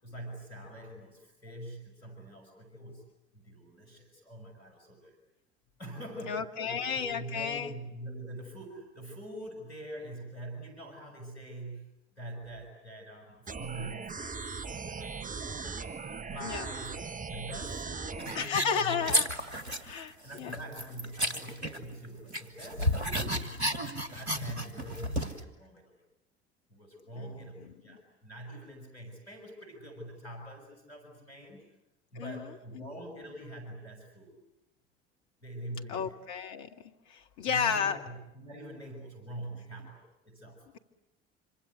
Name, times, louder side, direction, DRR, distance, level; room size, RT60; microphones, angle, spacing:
voice 1, 0.0-3.0 3.3-5.2 5.8-11.9 12.2-15.9 16.2-16.9 17.3-19.1 20.2-23.6 24.1-26.0 26.7-31.7 32.1-34.3 35.4-36.1 37.4-40.7, right 1 dB, 85° left, 3 dB, 6.5 m, -44 dB
voice 2, 6.3-7.7 16.4-16.7 18.4-19.3 19.8-20.6 27.2-28.0 32.1-32.9 35.9-38.0, left 7 dB, 60° left, 6 dB, 2.1 m, -33 dB
sound 1, 13.5-18.5, right 5 dB, 25° right, 1.3 m, -39 dB
sound 2, 18.2-20.0 20.3-22.1 22.3-25.4, equal, 90° right, 1.7 m, -32 dB
26.5 x 25.5 x 8.1 m, 0.89 s
figure-of-eight pair, 60°, 32 cm